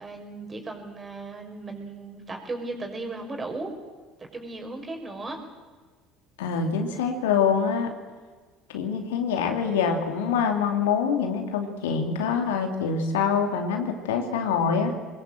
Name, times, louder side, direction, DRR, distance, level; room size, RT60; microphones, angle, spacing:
voice 1, 0.0-3.7 4.2-5.4, right 2 dB, 25° right, 4 dB, 5.5 m, -36 dB
voice 2, 6.4-7.9 8.7-14.9, left 6 dB, 75° left, 4 dB, 2.7 m, -25 dB
24.0 x 21.0 x 7.8 m, 1.4 s
hypercardioid pair, 65°, 0 cm